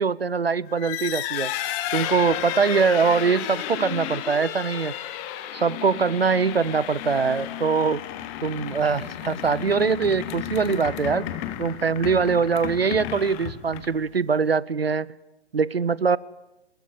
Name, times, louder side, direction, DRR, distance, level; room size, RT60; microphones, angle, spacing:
voice 1, 0.0-1.5 1.9-4.9 5.5-8.0 8.4-11.3 11.6-15.1 15.5-16.2, right 5 dB, 60° right, 22 dB, 0.9 m, -23 dB
sound 1, 0.7-14.1, left 12 dB, 15° left, 1.2 m, -33 dB
23.5 x 21.0 x 9.8 m, 0.95 s
figure-of-eight pair, 140°, 33 cm